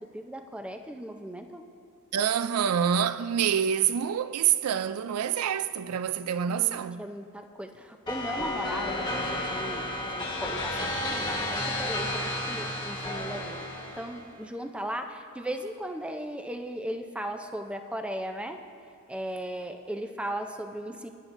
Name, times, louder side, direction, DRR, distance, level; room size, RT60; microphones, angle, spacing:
voice 1, 0.0-1.6 6.5-13.7 14.0-18.6 19.1-21.1, right 1 dB, 5° right, 0.5 m, -37 dB
voice 2, 2.1-7.1, right 8 dB, 75° right, 0.4 m, -26 dB
sound 1, 8.1-14.3, left 1 dB, 20° left, 1.3 m, -32 dB
20.0 x 11.0 x 2.6 m
head